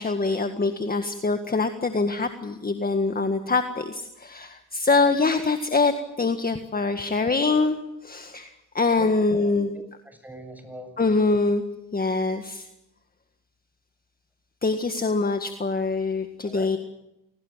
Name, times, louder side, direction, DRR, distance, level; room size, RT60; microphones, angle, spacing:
voice 1, 0.0-7.8 8.0-8.5 8.8-9.8 11.0-11.6 11.9-12.7 14.6-16.8, left 3 dB, 25° left, 7 dB, 1.8 m, -24 dB
voice 2, 9.0-11.0 16.4-16.7, equal, 5° right, 7 dB, 8.0 m, -43 dB
28.0 x 19.0 x 7.5 m, 0.88 s
supercardioid pair, 65°, 38 cm